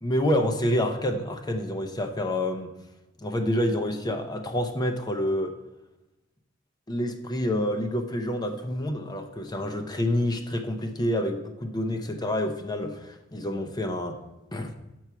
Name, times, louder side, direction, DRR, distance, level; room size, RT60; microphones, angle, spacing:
voice 1, 0.0-2.7 3.2-5.5 6.9-14.2 14.5-14.7, left 1 dB, 20° left, 5 dB, 0.6 m, -28 dB
8.0 x 4.6 x 5.7 m, 0.99 s
head